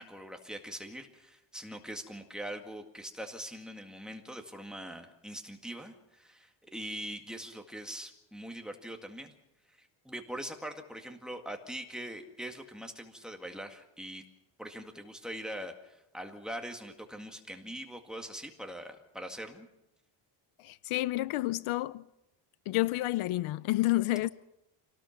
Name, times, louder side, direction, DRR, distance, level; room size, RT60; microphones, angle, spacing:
voice 1, 0.0-9.3 9.7-14.2 14.6-19.7, equal, ahead, 1.9 m, -42 dB
voice 2, 20.6-22.1 22.7-24.3, left 18 dB, 75° left, 0.7 m, -29 dB
26.0 x 18.5 x 5.9 m
cardioid pair, 155°, 50 cm